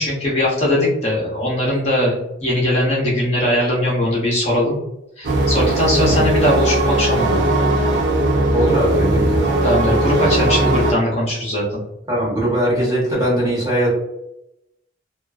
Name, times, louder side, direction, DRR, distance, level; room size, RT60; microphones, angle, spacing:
voice 1, 0.0-4.8 5.2-7.4 9.6-11.8, left 1 dB, 35° left, -5 dB, 0.7 m, -20 dB
sound 1, 5.2-10.9, right 1 dB, 60° right, 0.5 m, -18 dB
voice 2, 8.5-9.4 12.1-13.9, right 1 dB, 20° right, -6 dB, 0.9 m, -20 dB
2.5 x 2.3 x 2.3 m, 0.87 s
head